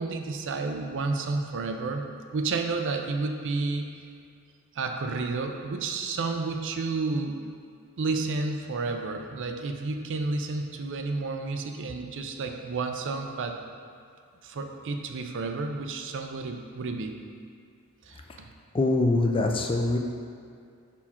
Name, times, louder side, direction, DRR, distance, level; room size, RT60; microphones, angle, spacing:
voice 1, 0.0-2.0 2.3-3.9 4.7-7.4 8.0-13.6 14.4-17.1 18.0-18.5, right 3 dB, 55° right, 5 dB, 0.5 m, -31 dB
voice 2, 18.7-20.0, left 2 dB, 25° left, 3 dB, 0.4 m, -24 dB
5.7 x 4.4 x 4.3 m, 2.3 s
head